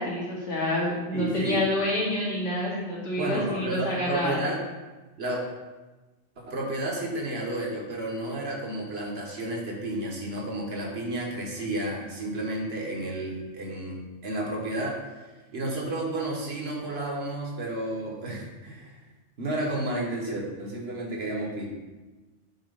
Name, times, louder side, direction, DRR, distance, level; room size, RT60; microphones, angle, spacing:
voice 1, 0.0-4.4, left 1 dB, 80° left, -7 dB, 2.4 m, -28 dB
voice 2, 1.1-1.6 3.2-4.6 5.2-5.4 6.4-15.0 15.5-19.0 19.4-21.7, right 1 dB, 55° right, -1 dB, 1.4 m, -31 dB
8.0 x 3.0 x 5.3 m, 1.2 s
omnidirectional pair, 1.3 m